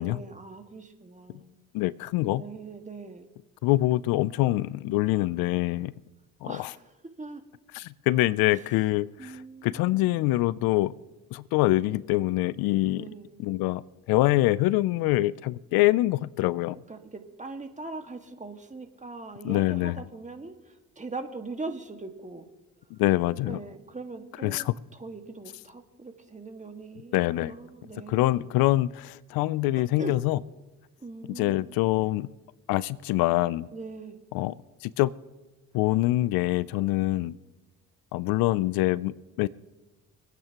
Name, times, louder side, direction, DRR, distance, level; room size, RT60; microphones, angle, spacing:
voice 1, 0.0-1.6 2.4-3.3 6.4-6.9 7.2-7.4 9.2-10.1 12.9-13.4 15.8-16.0 16.9-22.5 23.5-24.6 24.9-28.5 30.0-30.1 31.0-31.7 33.7-34.2 37.0-37.1, right 3 dB, 20° right, 5 dB, 1.8 m, -41 dB
voice 2, 1.7-2.4 3.6-5.9 6.4-6.7 7.7-9.3 9.6-10.9 11.3-13.0 13.4-13.8 14.1-16.8 19.4-20.0 22.9-23.6 24.4-24.7 27.1-27.5 28.1-30.4 31.3-32.3 32.7-33.7 34.3-34.5 34.8-35.1 35.7-37.4 38.1-39.5, left 17 dB, 80° left, 20 dB, 0.5 m, -25 dB
25.5 x 9.3 x 3.0 m, 1.1 s
supercardioid pair, 60°, 35 cm